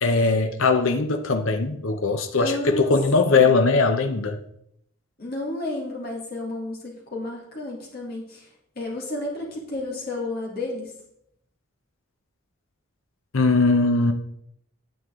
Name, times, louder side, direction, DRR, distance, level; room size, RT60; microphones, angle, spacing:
voice 1, 0.0-4.4 13.3-14.1, left 3 dB, 65° left, 6 dB, 0.7 m, -20 dB
voice 2, 2.4-2.9 3.2-3.6 5.2-8.5 8.7-10.9, left 2 dB, 45° left, -2 dB, 2.8 m, -32 dB
9.4 x 7.8 x 3.7 m, 0.73 s
head